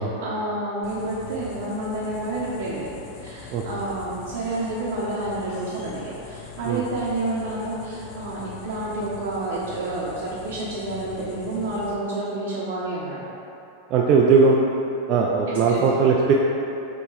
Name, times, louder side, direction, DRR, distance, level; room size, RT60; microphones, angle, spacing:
voice 1, 0.2-13.2 15.7-15.8, right 2 dB, 70° right, -8 dB, 0.8 m, -29 dB
sound 1, 0.8-11.9, left 6 dB, 45° left, 0.4 m, -42 dB
voice 2, 13.9-14.6 15.1-16.3, right 5 dB, 40° right, -2 dB, 0.3 m, -18 dB
4.1 x 3.0 x 3.7 m, 2.9 s
supercardioid pair, 135°, 0 cm